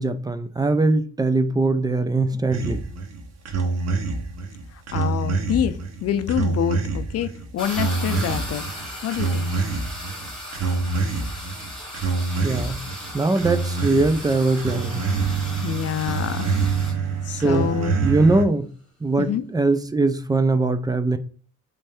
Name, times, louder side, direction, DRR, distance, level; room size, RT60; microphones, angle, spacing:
voice 1, 0.0-2.8 12.4-12.8 13.1-15.0 17.4-17.7 18.0-18.7 19.0-21.2, right 2 dB, 15° right, 0.4 m, -21 dB
sound 1, 2.5-18.5, right 4 dB, 60° right, 0.8 m, -26 dB
voice 2, 4.7-8.7 9.0-9.5 15.6-16.6 17.2-18.0 19.2-19.4, left 9 dB, 55° left, 0.5 m, -26 dB
sound 2, 7.6-17.0, equal, ahead, 1.4 m, -37 dB
3.3 x 2.6 x 3.3 m
cardioid pair, 90°, 30 cm